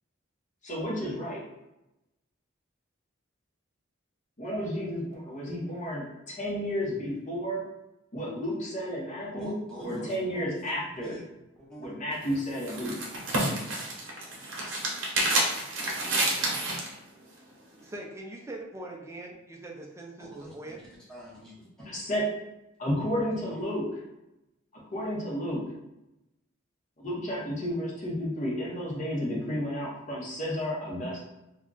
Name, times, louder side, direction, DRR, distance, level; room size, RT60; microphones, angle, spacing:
voice 1, 0.6-1.4 4.4-7.6 8.1-9.6 9.8-11.2 11.8-12.9 21.8-22.3 22.8-24.0 24.7-25.6 27.0-31.2, equal, 40° left, -4 dB, 0.8 m, -32 dB
voice 2, 9.3-10.5 10.7-11.2 11.6-12.1 12.5-12.6 20.2-21.9 23.4-23.6, equal, 5° left, -7 dB, 0.9 m, -45 dB
sound 1, 12.1-16.9, right 2 dB, 80° right, 0.8 m, -29 dB
voice 3, 17.8-20.8, right 2 dB, 15° right, 0 dB, 0.4 m, -42 dB
2.3 x 2.2 x 3.7 m, 0.92 s
head